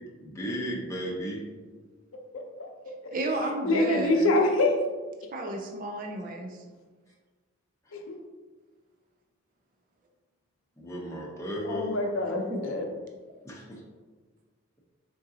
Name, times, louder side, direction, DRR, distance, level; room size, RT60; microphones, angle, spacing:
voice 1, 0.2-1.5 10.8-12.0 13.4-13.8, equal, 15° left, -4 dB, 0.7 m, -34 dB
voice 2, 2.3-3.1 3.4-4.7 7.9-8.2 11.6-12.9, left 2 dB, 70° left, 2 dB, 0.6 m, -26 dB
voice 3, 3.1-4.4 5.3-6.6 12.3-12.6, right 2 dB, 40° right, 2 dB, 0.3 m, -32 dB
3.9 x 3.6 x 2.7 m, 1.4 s
head